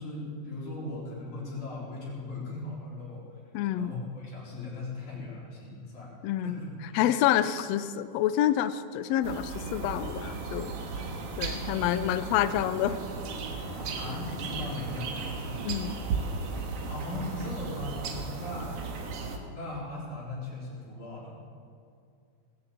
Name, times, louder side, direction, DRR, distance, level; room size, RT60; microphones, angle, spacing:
voice 1, 0.0-3.2 3.8-6.1 6.4-7.0 13.7-15.5 16.9-18.7 19.5-21.4, left 2 dB, 65° left, -6 dB, 5.3 m, -38 dB
voice 2, 3.5-3.9 6.2-6.6 6.9-10.7 11.4-13.0 15.6-16.0, left 11 dB, 85° left, 12 dB, 1.5 m, -27 dB
sound 1, 9.2-19.4, right 4 dB, 85° right, 2.8 m, -35 dB
19.0 x 6.9 x 8.6 m, 2.3 s
omnidirectional pair, 3.6 m